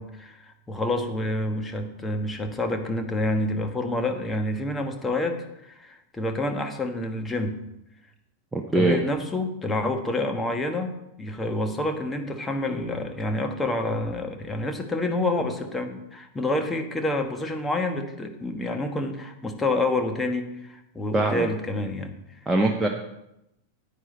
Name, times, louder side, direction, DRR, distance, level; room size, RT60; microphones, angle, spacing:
voice 1, 0.0-7.6 8.7-22.1, left 2 dB, 10° left, 5 dB, 1.3 m, -28 dB
voice 2, 8.5-9.0 21.1-21.5 22.5-22.9, right 2 dB, 10° right, 2 dB, 0.9 m, -22 dB
9.8 x 9.4 x 4.3 m, 0.85 s
figure-of-eight pair, 90°, 0 cm